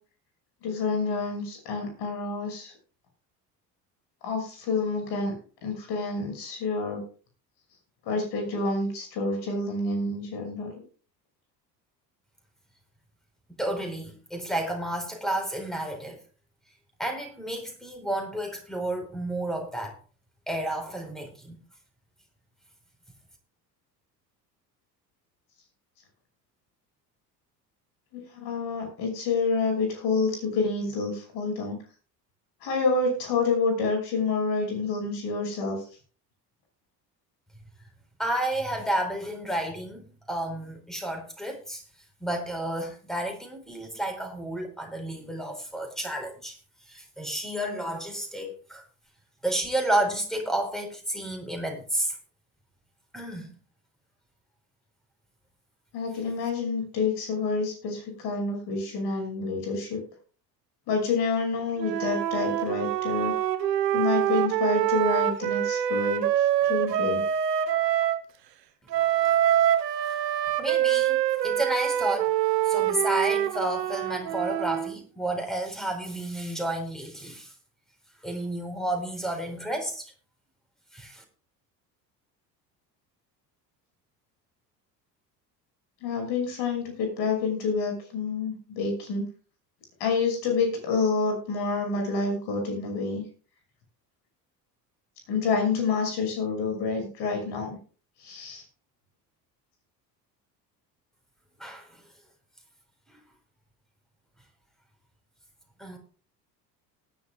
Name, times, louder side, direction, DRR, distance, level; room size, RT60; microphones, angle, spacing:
voice 1, 0.6-2.7 4.2-5.3 5.6-7.0 8.1-10.7 28.1-31.8 32.6-35.8 55.9-60.0 60.9-63.3 63.9-67.2 86.0-89.2 90.0-93.2 95.3-97.8 98.2-98.6, left 4 dB, 55° left, 6.1 m, -28 dB
voice 2, 13.5-16.2 17.0-20.0 20.5-21.6 38.2-41.8 42.2-48.8 49.4-52.2 53.1-53.5 69.2-69.4 69.7-70.3 70.6-72.3 72.6-77.5 78.2-80.1 80.9-81.2 101.6-102.0 103.1-103.2 105.8-106.0, right 1 dB, ahead, 4.4 m, -31 dB
Wind instrument woodwind instrument, 61.8-68.2 68.9-74.9, right 11 dB, 75° right, 1.2 m, -25 dB
19.5 x 11.0 x 2.4 m
figure-of-eight pair, 65°, 50 cm